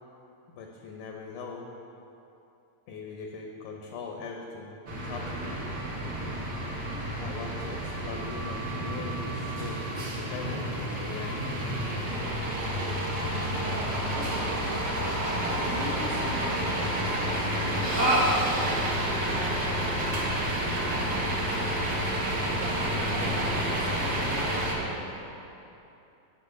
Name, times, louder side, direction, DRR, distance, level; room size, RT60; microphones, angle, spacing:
voice 1, 0.5-1.7 2.9-5.6 7.2-11.4, left 4 dB, 75° left, 1 dB, 1.9 m, -41 dB
sound 1, 4.9-24.7, right 1 dB, 65° right, 1.0 m, -29 dB
voice 2, 13.7-18.9 19.3-22.2 22.6-22.8 23.1-25.3, right 2 dB, 85° right, -3 dB, 3.2 m, -42 dB
8.5 x 6.1 x 8.0 m, 2.8 s
omnidirectional pair, 4.4 m